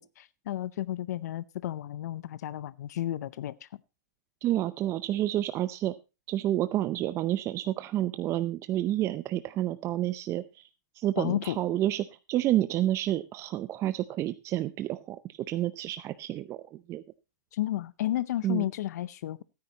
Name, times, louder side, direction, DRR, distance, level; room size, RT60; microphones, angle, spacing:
voice 1, 0.2-3.7 11.2-11.6 17.5-19.4, left 13 dB, 75° left, 18 dB, 0.6 m, -32 dB
voice 2, 4.4-5.9 6.3-10.7 11.0-17.0 18.4-18.6, right 13 dB, 30° right, 13 dB, 0.6 m, -29 dB
17.0 x 9.7 x 2.9 m, 0.28 s
hypercardioid pair, 130°, 9 cm